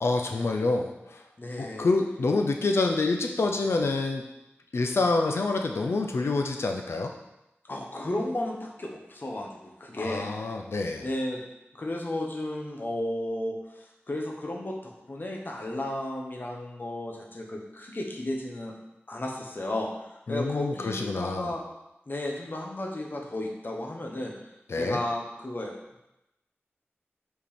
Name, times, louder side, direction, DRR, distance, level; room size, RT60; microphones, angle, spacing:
voice 1, 0.0-1.2 1.6-4.2 4.7-7.1 10.0-11.0 20.3-21.5 24.7-25.0, left 3 dB, 85° left, 3 dB, 0.5 m, -27 dB
voice 2, 1.4-1.9 7.7-10.3 11.0-11.4 11.7-18.7 19.1-21.6 22.1-24.3 24.7-25.7, left 1 dB, 50° left, 0 dB, 1.2 m, -33 dB
5.7 x 4.6 x 4.3 m, 0.90 s
wide cardioid pair, 65°, 4 cm